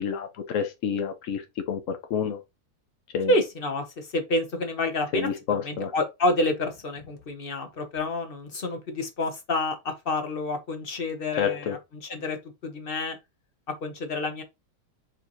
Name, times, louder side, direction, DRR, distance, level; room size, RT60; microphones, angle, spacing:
voice 1, 0.0-2.4 3.1-3.3 5.1-5.9 11.3-11.8, left 7 dB, 70° left, 0.7 m, -29 dB
voice 2, 3.3-11.8 12.1-12.4 12.6-13.2 13.8-14.4, left 2 dB, 35° left, 0.9 m, -28 dB
7.7 x 4.5 x 2.7 m
omnidirectional pair, 2.3 m